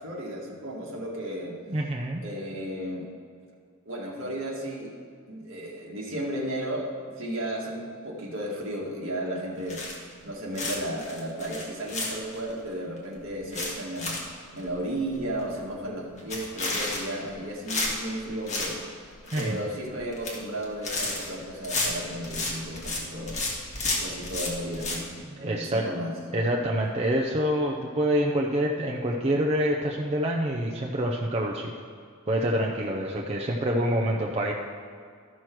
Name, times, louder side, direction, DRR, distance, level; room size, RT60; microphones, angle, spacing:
voice 1, 0.0-1.6 2.2-3.1 3.9-4.9 5.3-6.9 7.2-9.8 10.2-14.2 14.5-23.4 24.0-26.5, right 1 dB, 60° right, -2 dB, 1.8 m, -34 dB
voice 2, 1.7-2.2 19.3-19.6 25.2-25.8 26.3-31.7 32.3-34.5, equal, 30° right, -1 dB, 0.6 m, -26 dB
sound 1, 9.7-10.2 10.5-12.5 13.0-13.1 13.3-14.3 14.6-14.7 15.1-15.2 15.4-15.7 16.2-17.3 17.7-18.8 19.0-19.6 20.0-20.4 20.6-23.0 23.3-25.0, left 2 dB, 35° left, 1.7 m, -31 dB
13.0 x 6.2 x 4.6 m, 2.1 s
head